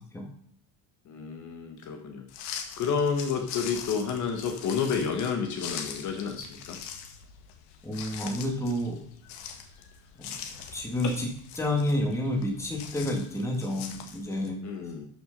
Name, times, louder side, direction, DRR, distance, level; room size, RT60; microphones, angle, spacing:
voice 1, 1.0-6.8 11.0-11.2 14.6-15.0, left 6 dB, 45° left, 4 dB, 1.5 m, -30 dB
sound 1, 2.3-14.5, left 7 dB, 70° left, 1.9 m, -42 dB
voice 2, 7.8-9.0 10.2-11.3 11.6-14.6, left 1 dB, 5° left, 0 dB, 2.0 m, -30 dB
12.5 x 6.3 x 5.3 m, 0.65 s
cardioid pair, 175°, 42 cm